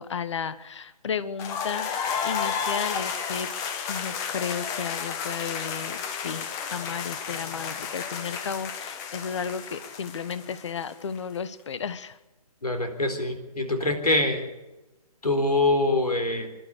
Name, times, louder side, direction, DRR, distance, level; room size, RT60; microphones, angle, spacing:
voice 1, 0.0-1.9 2.2-3.5 3.9-12.2, left 6 dB, 50° left, 14 dB, 1.2 m, -33 dB
sound 1, 1.4-11.2, left 6 dB, 15° left, 1.2 m, -32 dB
voice 2, 12.6-14.4 15.2-16.5, left 2 dB, 80° left, 6 dB, 4.2 m, -24 dB
27.5 x 12.0 x 8.4 m, 1.1 s
figure-of-eight pair, 140°, 20 cm